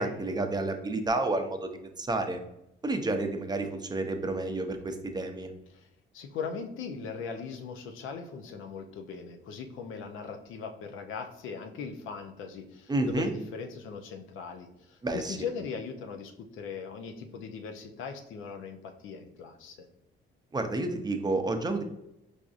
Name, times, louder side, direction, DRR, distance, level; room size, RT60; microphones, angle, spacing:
voice 1, 0.0-2.4 2.8-5.5 12.9-13.3 15.0-15.4 20.5-21.8, right 2 dB, 20° right, 6 dB, 0.5 m, -30 dB
voice 2, 6.1-19.9, left 5 dB, 85° left, 5 dB, 0.5 m, -39 dB
4.7 x 2.6 x 2.4 m, 0.84 s
cardioid pair, 90°, 20 cm